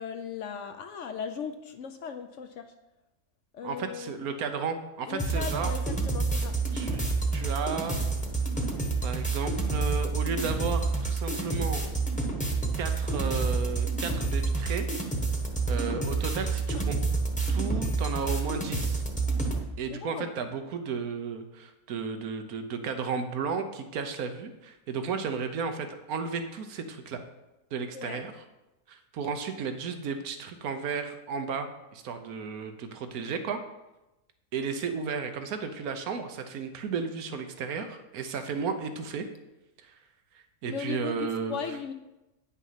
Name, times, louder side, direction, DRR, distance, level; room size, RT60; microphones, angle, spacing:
voice 1, 0.0-2.7 3.5-4.2 5.1-6.6 16.7-16.8 19.9-20.3 27.9-28.2 40.6-41.9, left 7 dB, 65° left, 8 dB, 0.9 m, -37 dB
voice 2, 3.6-5.7 6.7-8.2 9.0-12.0 12.8-14.9 15.7-17.0 17.5-19.0 19.8-27.2 27.7-28.3 28.9-33.6 34.5-39.3 39.8-40.0 40.6-41.6, right 5 dB, 90° right, 8 dB, 1.3 m, -34 dB
sound 1, 5.2-19.6, right 3 dB, 5° left, 1.0 m, -28 dB
9.4 x 6.1 x 5.7 m, 0.98 s
omnidirectional pair, 1.5 m